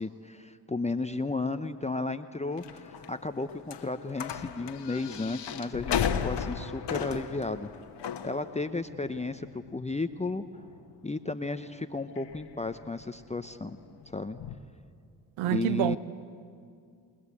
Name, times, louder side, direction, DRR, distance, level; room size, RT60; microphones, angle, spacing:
voice 1, 0.0-7.7 8.2-10.4 11.0-13.8 14.1-14.4 15.5-16.0, left 3 dB, 15° left, 0.9 m, -33 dB
sound 1, 2.6-14.6, left 8 dB, 55° left, 1.5 m, -37 dB
voice 2, 15.4-16.0, right 14 dB, 70° right, 0.9 m, -27 dB
28.5 x 20.5 x 8.5 m
hypercardioid pair, 45°, 50 cm